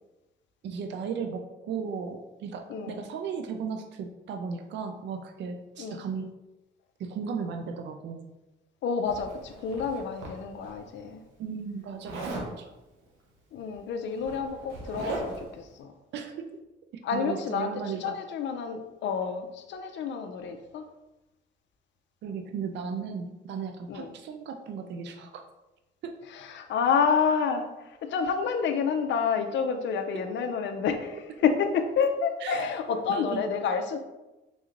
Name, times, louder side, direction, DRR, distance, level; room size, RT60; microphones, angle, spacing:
voice 1, 0.6-6.4 7.0-8.4 11.4-12.7 16.1-16.5 17.1-18.2 22.2-25.4 26.0-26.2 32.4-32.6 32.9-33.6, right 6 dB, 65° right, 5 dB, 0.4 m, -36 dB
voice 2, 2.7-3.0 5.8-6.0 8.8-11.2 13.5-15.9 17.0-17.7 18.0-20.8 23.9-24.1 26.3-34.0, left 6 dB, 65° left, 7 dB, 0.5 m, -29 dB
Zipper (clothing), 9.1-10.7 12.0-12.5 13.7-13.8 14.1-15.5, right 2 dB, 90° right, 0.8 m, -38 dB
3.6 x 3.1 x 2.5 m, 1.0 s
cardioid pair, 90°, 20 cm